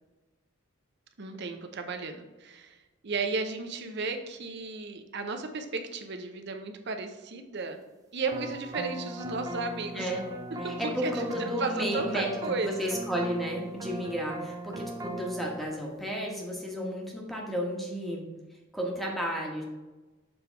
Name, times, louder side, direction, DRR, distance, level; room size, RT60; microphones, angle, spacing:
voice 1, 1.2-2.8 3.0-7.8 8.1-10.1 10.6-13.0, right 4 dB, 60° right, 6 dB, 0.7 m, -34 dB
sound 1, 8.3-15.6, right 1 dB, 15° right, 0.5 m, -39 dB
voice 2, 10.8-18.3 18.7-19.6, equal, ahead, -2 dB, 1.2 m, -32 dB
7.0 x 3.4 x 4.5 m, 1.2 s
head